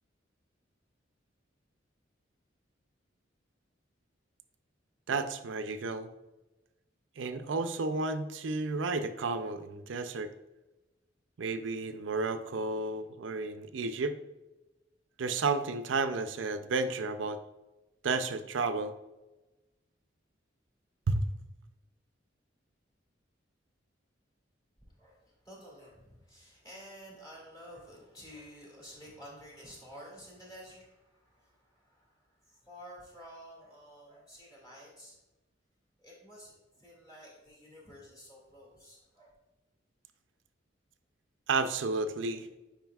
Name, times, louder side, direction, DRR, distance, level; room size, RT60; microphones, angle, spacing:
voice 1, 5.1-6.1 7.2-10.3 11.4-14.2 15.2-17.4 18.0-19.0 21.1-21.2 41.5-42.5, right 3 dB, 75° right, 10 dB, 0.5 m, -32 dB
voice 2, 25.0-35.2 36.0-39.3, equal, 20° left, -5 dB, 2.1 m, -51 dB
9.0 x 4.9 x 2.3 m, 1.1 s
head